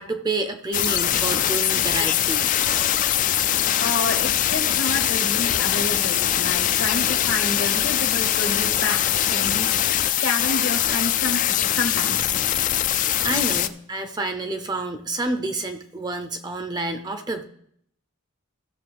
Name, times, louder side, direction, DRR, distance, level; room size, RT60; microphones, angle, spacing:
voice 1, 0.0-2.5 12.9-17.4, right 2 dB, 20° right, 7 dB, 0.5 m, -29 dB
sound 1, 0.7-13.7, left 11 dB, 35° left, 0.3 m, -22 dB
voice 2, 3.8-9.0 9.3-9.7 10.2-12.4, left 3 dB, 60° left, 5 dB, 1.0 m, -29 dB
15.5 x 6.7 x 3.4 m, 0.70 s
head